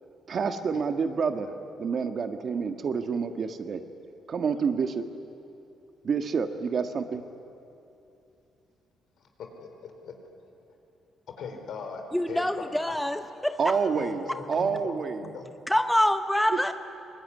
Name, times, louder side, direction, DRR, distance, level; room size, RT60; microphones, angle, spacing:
voice 1, 0.3-1.5 1.8-3.8 4.3-5.0 6.0-7.2 13.6-15.3 16.5-16.7, right 5 dB, 50° right, 7 dB, 1.6 m, -28 dB
voice 2, 9.2-10.1 11.4-13.0 13.9-15.0 15.2-15.4, left 5 dB, 70° left, 4 dB, 4.3 m, -40 dB
voice 3, 12.1-13.8 15.7-16.7, left 1 dB, 5° left, 8 dB, 0.8 m, -25 dB
23.5 x 20.0 x 9.8 m, 2.8 s
cardioid pair, 90°, 0 cm